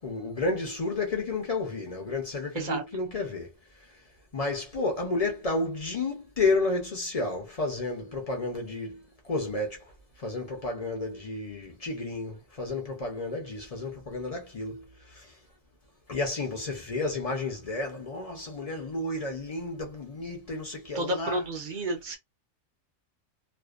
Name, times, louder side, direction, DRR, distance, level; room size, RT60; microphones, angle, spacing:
voice 1, 0.0-3.5 4.3-9.9 10.2-15.3 16.1-21.4, left 3 dB, 45° left, 0.5 m, -31 dB
voice 2, 20.9-22.2, right 1 dB, 55° right, 0.6 m, -31 dB
2.5 x 2.1 x 2.4 m
omnidirectional pair, 1.4 m